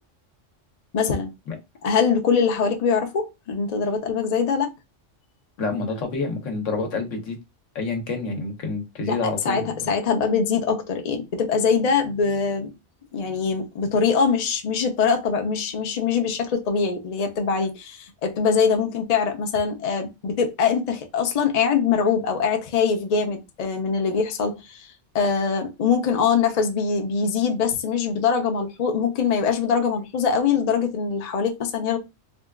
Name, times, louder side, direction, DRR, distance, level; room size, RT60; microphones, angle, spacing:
voice 1, 0.9-1.3 1.8-4.7 9.1-12.7 13.1-24.9 25.1-32.0, left 6 dB, 45° left, 0.5 m, -23 dB
voice 2, 5.6-7.4 7.7-9.7, left 3 dB, 80° left, 1.2 m, -28 dB
3.7 x 2.3 x 2.2 m
omnidirectional pair, 1.3 m